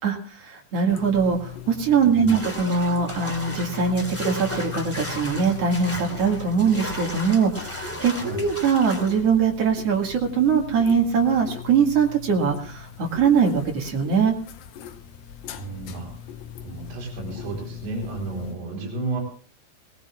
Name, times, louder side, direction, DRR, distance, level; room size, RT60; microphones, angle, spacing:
voice 1, 0.0-14.3, right 6 dB, 45° right, 0 dB, 2.6 m, -22 dB
sound 1, 0.9-18.5, left 8 dB, 70° left, 2.4 m, -39 dB
voice 2, 2.1-2.4 8.1-8.5 15.5-16.2 16.6-19.2, right 3 dB, 70° right, -3 dB, 5.5 m, -32 dB
sound 2, 2.3-9.2, equal, 5° left, 1.9 m, -35 dB
21.0 x 19.0 x 2.4 m, 0.41 s
omnidirectional pair, 4.8 m